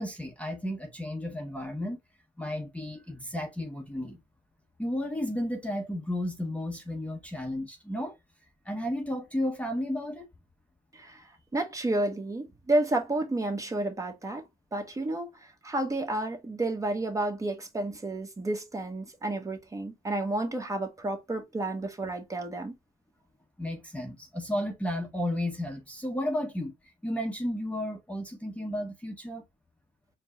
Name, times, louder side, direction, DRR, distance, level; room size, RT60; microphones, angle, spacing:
voice 1, 0.0-2.0 2.4-4.2 4.8-8.2 8.6-10.3 23.6-26.7 27.0-29.4, left 1 dB, 10° left, 0.7 m, -33 dB
voice 2, 10.9-14.4 14.7-15.3 15.6-22.7, right 2 dB, 20° right, 0.9 m, -31 dB
4.4 x 2.0 x 3.6 m
cardioid pair, 110°, 17 cm